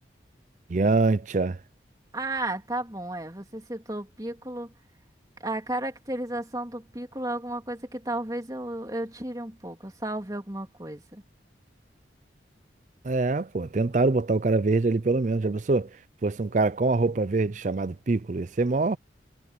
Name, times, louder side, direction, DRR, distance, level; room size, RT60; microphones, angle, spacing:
voice 1, 0.7-1.6 13.0-15.9 16.2-19.0, right 3 dB, 40° right, 0.5 m, -24 dB
voice 2, 2.1-4.7 5.4-11.2, right 1 dB, 20° right, 2.9 m, -33 dB
head